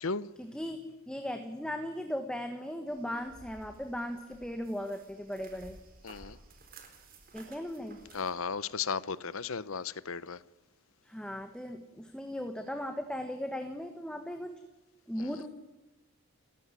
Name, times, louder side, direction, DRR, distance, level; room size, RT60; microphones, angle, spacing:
voice 1, 0.4-5.8 7.3-8.0 11.0-14.5 15.1-15.5, equal, 5° left, 1.3 m, -37 dB
sound 1, 2.9-8.3, right 3 dB, 40° right, 4.2 m, -55 dB
voice 2, 6.0-6.4 8.1-10.4 15.2-15.3, left 5 dB, 70° left, 0.9 m, -35 dB
30.0 x 14.5 x 9.8 m
head